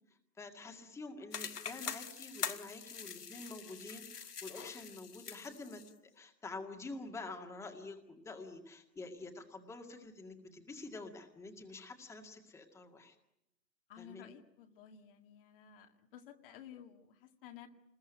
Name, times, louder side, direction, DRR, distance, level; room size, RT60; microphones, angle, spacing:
voice 1, 0.1-5.8 6.1-13.2 14.0-14.3, left 3 dB, 5° left, 4 dB, 2.0 m, -48 dB
sound 1, 1.3-5.9, left 7 dB, 65° left, 1.6 m, -44 dB
voice 2, 13.9-17.7, left 10 dB, 35° left, 4 dB, 2.0 m, -54 dB
29.0 x 21.0 x 9.2 m, 0.84 s
figure-of-eight pair, 125°, 49 cm